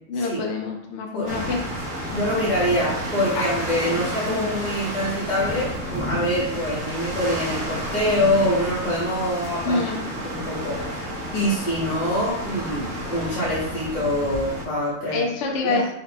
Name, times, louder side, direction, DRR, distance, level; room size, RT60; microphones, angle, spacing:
voice 1, 0.1-1.6 3.3-3.4 4.3-4.5 9.6-10.0 15.1-15.9, left 3 dB, 65° left, 1 dB, 0.8 m, -26 dB
sound 1, 1.3-14.6, equal, 60° right, 1.4 m, -31 dB
voice 2, 2.1-9.9 10.2-10.8 11.3-15.2 15.6-15.8, equal, 35° left, -7 dB, 0.9 m, -25 dB
4.2 x 2.1 x 4.1 m, 0.76 s
omnidirectional pair, 1.5 m